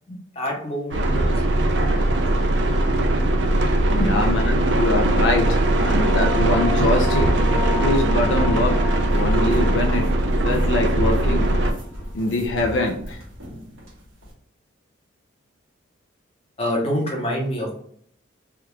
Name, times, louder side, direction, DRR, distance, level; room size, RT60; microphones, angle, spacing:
voice 1, 0.1-2.2 4.0-4.1 16.6-17.7, equal, 30° left, -1 dB, 0.8 m, -27 dB
sound 1, 0.9-11.7, right 1 dB, 60° right, 0.4 m, -20 dB
voice 2, 3.9-7.3 7.8-8.8 9.1-10.1 10.4-11.5 12.1-13.2, left 2 dB, 70° left, 2 dB, 0.4 m, -23 dB
sound 2, 4.8-11.9, left 6 dB, 10° left, 0.3 m, -34 dB
sound 3, 8.9-14.3, equal, 90° right, 1.3 m, -38 dB
3.4 x 2.3 x 2.9 m, 0.63 s
head